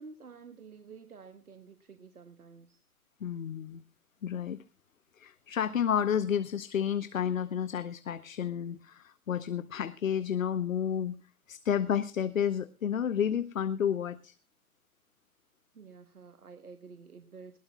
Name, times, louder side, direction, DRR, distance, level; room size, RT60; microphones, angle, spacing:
voice 1, 0.0-2.8 15.7-17.6, right 5 dB, 75° right, 9 dB, 1.3 m, -50 dB
voice 2, 3.2-3.8 4.2-4.6 5.2-11.2 11.5-14.3, left 8 dB, 60° left, 16 dB, 0.8 m, -31 dB
20.0 x 18.0 x 2.2 m, 0.30 s
figure-of-eight pair, 125°, 44 cm